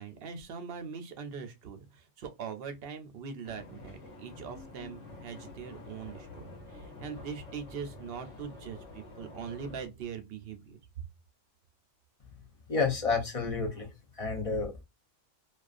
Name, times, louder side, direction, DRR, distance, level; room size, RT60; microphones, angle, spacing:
voice 1, 0.0-10.8, right 6 dB, 60° right, 0.7 m, -42 dB
sound 1, 3.4-9.9, left 2 dB, 75° left, 1.2 m, -48 dB
voice 2, 12.7-13.9 14.2-14.8, left 4 dB, 40° left, 0.5 m, -30 dB
2.3 x 2.3 x 2.4 m
omnidirectional pair, 1.2 m